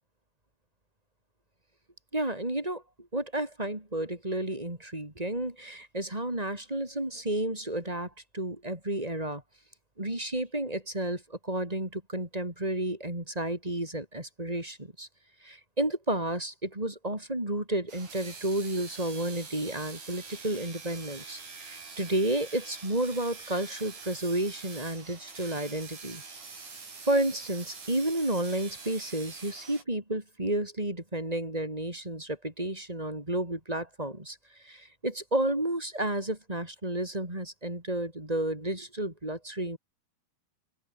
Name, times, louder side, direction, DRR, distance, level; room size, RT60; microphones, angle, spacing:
voice 1, 2.1-9.4 10.0-15.1 15.4-26.2 27.1-39.8, right 1 dB, 10° right, 4.4 m, -31 dB
sound 1, 17.9-29.8, right 4 dB, 50° right, 7.6 m, -45 dB
open air
omnidirectional pair, 4.6 m